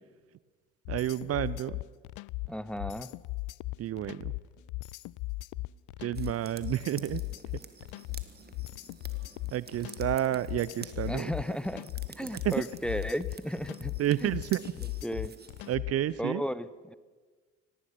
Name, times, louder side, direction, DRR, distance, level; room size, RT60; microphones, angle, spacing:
sound 1, 0.8-16.1, left 22 dB, 55° left, 0.5 m, -38 dB
voice 1, 0.9-1.8 3.8-4.3 6.0-7.2 9.5-11.3 12.2-12.6 14.0-14.6 15.7-16.4, right 12 dB, 45° right, 19 dB, 0.6 m, -30 dB
voice 2, 2.5-3.1 11.1-14.0 14.2-14.4 15.0-15.3 16.2-16.9, equal, 5° left, 16 dB, 0.9 m, -34 dB
sound 2, 6.1-15.8, right 5 dB, 25° right, 1.9 m, -51 dB
25.0 x 18.5 x 5.8 m, 1.4 s
hypercardioid pair, 55°, 35 cm